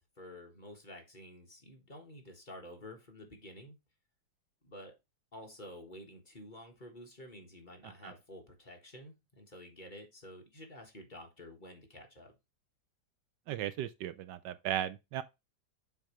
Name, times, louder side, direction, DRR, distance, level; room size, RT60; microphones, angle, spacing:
voice 1, 0.2-3.8 4.6-4.9 5.3-12.3, left 1 dB, 25° left, 1.7 m, -50 dB
voice 2, 13.5-15.2, right 11 dB, 75° right, 1.2 m, -36 dB
7.4 x 5.1 x 3.1 m
omnidirectional pair, 2.0 m